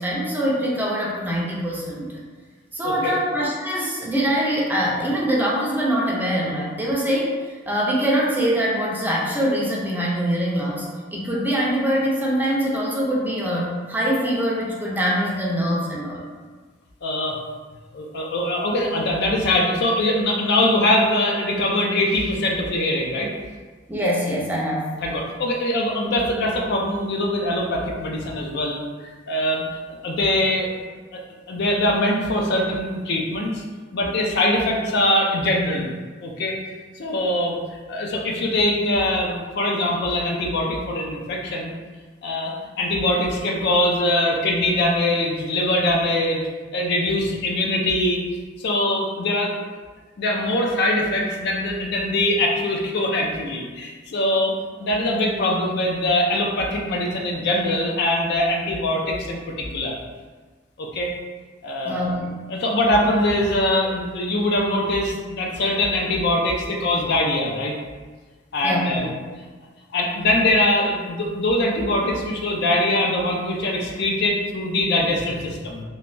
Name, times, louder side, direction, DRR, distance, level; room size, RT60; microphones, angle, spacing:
voice 1, 0.0-2.1 2.7-7.3 7.7-16.2 23.9-24.9 61.8-62.3 68.6-69.1, equal, 10° right, -5 dB, 0.4 m, -23 dB
voice 2, 2.8-3.2 17.0-17.4 17.9-23.3 25.0-29.6 30.0-30.7 31.5-33.6 33.9-35.9 36.2-36.6 36.9-37.6 37.9-41.7 42.2-46.4 46.7-48.2 48.6-49.5 50.2-59.9 60.8-61.1 61.6-62.1 62.5-67.8 68.5-69.1 69.9-75.8, left 1 dB, 60° left, 0 dB, 0.4 m, -22 dB
3.1 x 2.2 x 2.5 m, 1.4 s
head